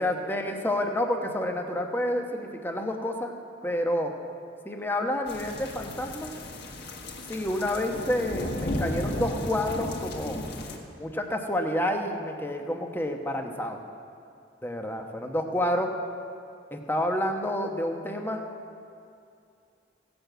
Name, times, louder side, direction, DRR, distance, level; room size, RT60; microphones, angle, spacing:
voice 1, 0.0-3.3 3.6-4.1 4.6-6.3 7.3-10.4 11.0-13.8 14.6-15.9 16.7-18.4, left 1 dB, 10° left, 3 dB, 1.0 m, -29 dB
sound 1, 5.3-10.8, left 1 dB, 60° left, 1.7 m, -34 dB
16.5 x 7.1 x 7.9 m, 2.5 s
head